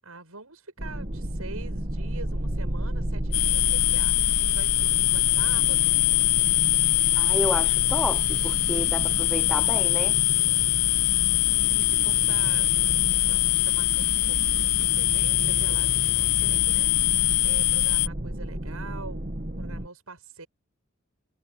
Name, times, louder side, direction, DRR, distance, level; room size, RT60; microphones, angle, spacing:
voice 1, 0.0-6.0 11.6-12.7 13.3-19.2 19.6-20.5, right 3 dB, 75° right, 7.9 m, -44 dB
sound 1, 0.8-19.9, right 1 dB, 40° right, 1.8 m, -32 dB
sound 2, 3.3-18.1, left 20 dB, 85° left, 0.4 m, -23 dB
voice 2, 7.1-10.2, equal, ahead, 0.6 m, -31 dB
head